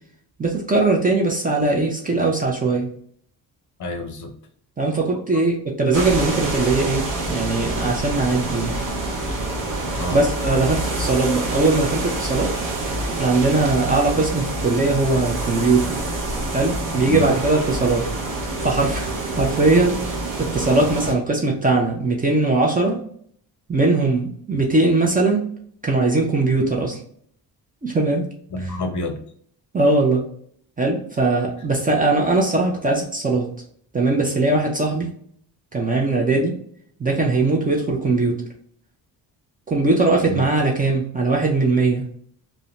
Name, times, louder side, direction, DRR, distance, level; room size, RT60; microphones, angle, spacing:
voice 1, 0.4-2.9 4.8-8.8 10.1-12.5 13.2-16.0 16.5-18.1 18.6-20.0 20.4-23.0 23.7-25.4 25.8-27.0 27.8-28.3 29.7-30.2 30.8-33.5 33.9-35.1 35.7-36.6 37.0-38.4 39.7-42.1, right 3 dB, 20° right, -1 dB, 0.4 m, -20 dB
voice 2, 3.8-4.3 4.9-5.4 6.0-6.1 9.9-10.2 11.0-11.1 17.0-17.3 28.5-29.2 40.2-40.5, left 1 dB, 45° left, 4 dB, 0.5 m, -29 dB
sound 1, 5.9-21.1, right 2 dB, 45° right, 0.8 m, -27 dB
2.4 x 2.1 x 2.8 m, 0.62 s
cardioid pair, 115°, 43 cm